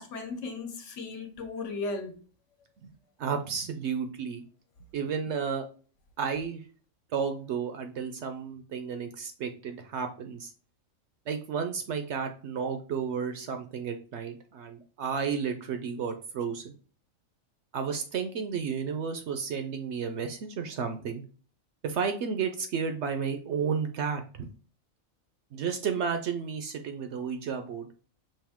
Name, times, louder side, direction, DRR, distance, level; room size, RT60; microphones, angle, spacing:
voice 1, 0.0-2.1, left 3 dB, 65° left, 1.2 m, -36 dB
voice 2, 3.2-4.4 4.9-5.7 6.2-6.6 7.1-10.5 11.3-16.7 17.7-21.2 21.8-24.5 25.5-27.9, right 6 dB, 65° right, 0.8 m, -32 dB
5.5 x 2.6 x 3.5 m
omnidirectional pair, 1.4 m